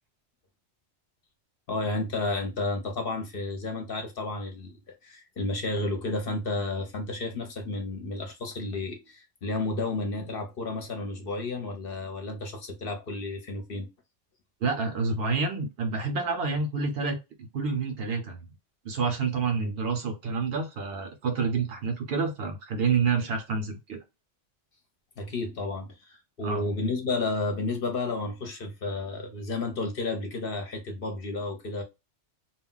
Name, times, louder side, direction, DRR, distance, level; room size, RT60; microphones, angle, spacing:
voice 1, 1.7-13.9 19.6-19.7 25.2-31.8, left 2 dB, 55° left, 0.8 m, -32 dB
voice 2, 14.6-18.4 18.8-24.0 26.4-26.6, right 4 dB, 60° right, 0.7 m, -28 dB
2.2 x 2.2 x 3.7 m
omnidirectional pair, 1.2 m